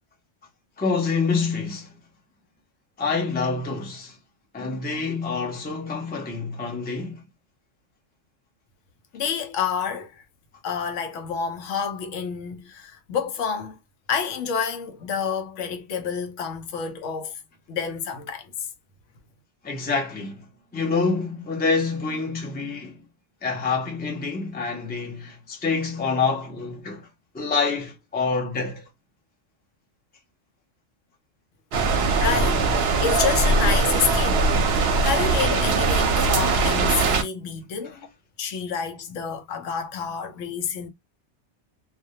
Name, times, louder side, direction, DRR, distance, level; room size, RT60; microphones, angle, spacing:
voice 1, 0.8-2.0 3.0-4.2 4.5-7.3 19.6-23.0 23.4-27.1 27.3-28.8 37.8-38.0, left 4 dB, 15° left, 0.4 m, -27 dB
voice 2, 9.1-10.2 10.6-13.8 14.1-17.4 17.7-18.5 32.2-34.4 34.8-38.1 38.4-40.9, left 6 dB, 75° left, 0.9 m, -28 dB
sound 1, 31.7-37.2, right 3 dB, 65° right, 0.8 m, -21 dB
2.2 x 2.1 x 2.7 m
omnidirectional pair, 1.3 m